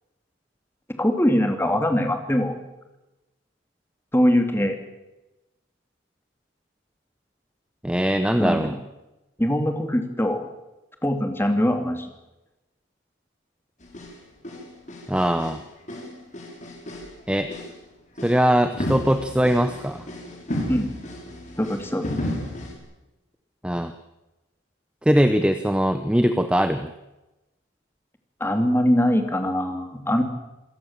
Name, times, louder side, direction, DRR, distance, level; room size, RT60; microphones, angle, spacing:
voice 1, 1.0-2.6 4.1-4.8 8.4-8.8 9.4-10.5 11.0-12.1 20.7-20.9 21.6-22.1 28.4-30.2, equal, 10° left, 5 dB, 2.6 m, -22 dB
voice 2, 7.8-8.7 15.1-15.6 17.3-17.5 18.2-20.1 23.6-23.9 25.0-26.9, equal, 5° right, 9 dB, 0.8 m, -21 dB
sound 1, 13.8-14.2 14.4-15.6 15.9-17.1 17.4-17.8 18.2-18.4 18.8-22.8, left 1 dB, 40° left, 5.2 m, -33 dB
27.0 x 17.0 x 7.4 m, 1.0 s
head